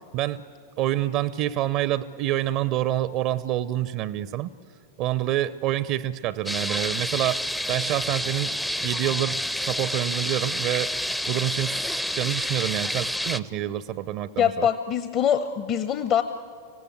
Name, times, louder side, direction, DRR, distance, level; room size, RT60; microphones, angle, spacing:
voice 1, 0.1-0.4 0.8-4.5 5.0-8.5 8.8-10.9 11.3-11.8 12.1-14.7, right 13 dB, 40° right, 18 dB, 0.6 m, -27 dB
sound 1, 6.5-13.4, left 1 dB, 5° left, 0.5 m, -29 dB
voice 2, 14.4-16.2, left 9 dB, 35° left, 10 dB, 0.8 m, -23 dB
25.0 x 17.0 x 9.4 m, 2.2 s
figure-of-eight pair, 90°, 0 cm